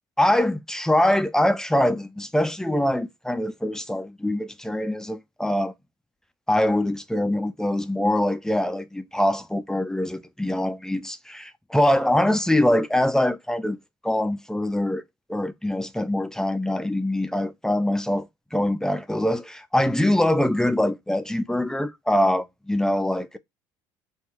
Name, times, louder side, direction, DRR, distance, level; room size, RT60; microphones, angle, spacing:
voice 1, 0.2-5.7 6.5-13.8 14.0-15.0 15.3-23.4, left 1 dB, 5° left, 0.4 m, -23 dB
3.6 x 2.3 x 2.9 m
hypercardioid pair, 75°, 11 cm